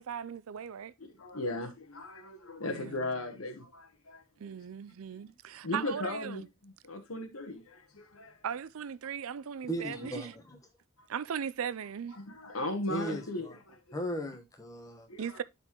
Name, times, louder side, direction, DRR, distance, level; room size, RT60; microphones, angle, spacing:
voice 1, 0.0-0.9 2.6-3.0 4.4-6.5 8.4-10.3 11.1-12.1 15.2-15.4, right 7 dB, 75° right, 0.4 m, -38 dB
voice 2, 1.1-4.6 5.6-8.4 12.1-14.0 15.1-15.4, left 2 dB, 75° left, 1.2 m, -37 dB
voice 3, 9.7-10.6 12.9-13.6 13.9-15.1, right 1 dB, 15° left, 1.2 m, -37 dB
11.5 x 4.2 x 3.0 m
head